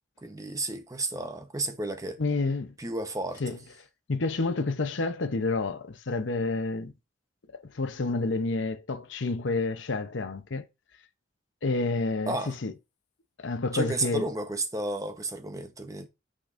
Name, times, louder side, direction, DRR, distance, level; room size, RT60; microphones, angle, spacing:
voice 1, 0.2-2.2 2.8-3.6 12.3-12.5 13.7-16.1, right 2 dB, 15° right, 0.9 m, -32 dB
voice 2, 2.2-2.7 3.4-3.6 4.1-6.9 7.5-10.7 11.6-12.7 13.4-14.2, left 3 dB, 70° left, 0.8 m, -29 dB
8.5 x 5.1 x 2.5 m
head